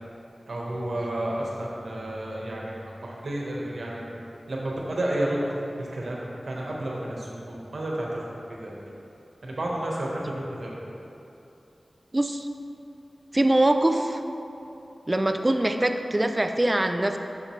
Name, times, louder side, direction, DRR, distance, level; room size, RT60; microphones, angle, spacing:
voice 1, 0.5-4.0 4.5-8.7 9.4-10.7, right 1 dB, 70° right, -3 dB, 1.3 m, -31 dB
voice 2, 12.1-12.5 13.3-14.2 15.1-17.2, right 1 dB, 25° right, 6 dB, 0.4 m, -23 dB
7.2 x 6.6 x 3.2 m, 2.9 s
wide cardioid pair, 80°, 0 cm